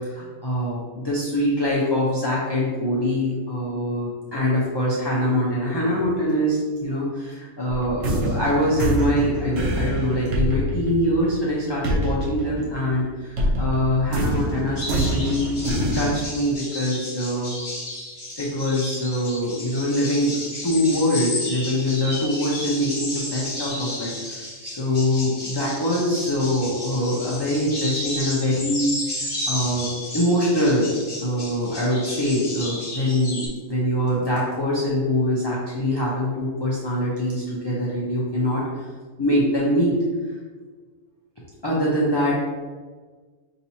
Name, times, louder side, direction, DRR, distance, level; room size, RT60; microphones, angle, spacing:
voice 1, 0.0-15.5 15.9-17.5 18.4-20.4 20.6-29.0 29.5-30.9 31.2-38.8 39.2-40.0 41.6-42.3, equal, 30° left, -6 dB, 0.5 m, -23 dB
sound 1, 7.7-13.0 13.4-16.1, right 1 dB, 80° right, 1.2 m, -25 dB
sound 2, 14.8-33.5, left 1 dB, 45° left, 1.2 m, -33 dB
5.0 x 3.0 x 2.7 m, 1.4 s
omnidirectional pair, 1.3 m